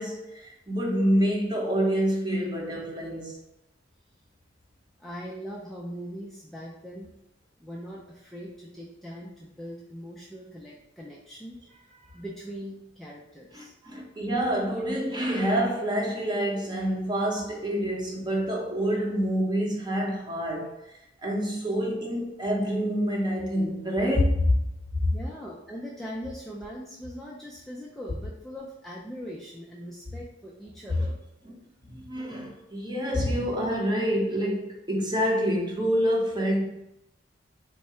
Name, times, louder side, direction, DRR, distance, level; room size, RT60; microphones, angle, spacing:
voice 1, 0.0-3.3 13.5-24.6 25.0-25.1 30.9-31.0 31.4-31.5 31.8-36.7, equal, 25° right, 0.8 m, -27 dB
voice 2, 5.0-7.1 7.6-13.7 25.1-31.2, equal, ahead, 0.4 m, -41 dB
3.6 x 2.2 x 4.2 m
head